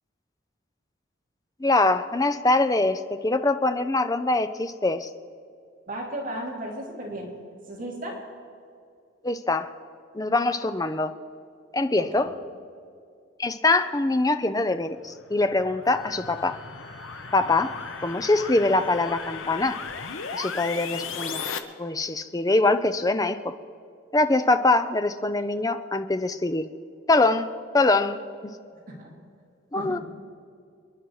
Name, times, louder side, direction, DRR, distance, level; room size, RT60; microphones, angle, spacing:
voice 1, 1.6-5.1 9.2-9.7 10.1-11.1 11.7-12.3 13.4-16.6 17.3-17.7 18.0-19.8 20.3-21.4 21.8-23.5 24.1-26.7 27.1-28.5 29.7-30.0, left 2 dB, 15° left, 10 dB, 0.5 m, -23 dB
voice 2, 5.9-7.3 7.7-8.2 12.0-12.3 28.9-29.1 29.7-30.0, right 1 dB, 40° right, -2 dB, 3.1 m, -34 dB
sound 1, 15.1-21.6, left 5 dB, 70° left, 1.0 m, -36 dB
Wind instrument woodwind instrument, 15.8-21.0, left 5 dB, 90° left, 4.0 m, -45 dB
27.5 x 10.5 x 4.8 m, 2.3 s
head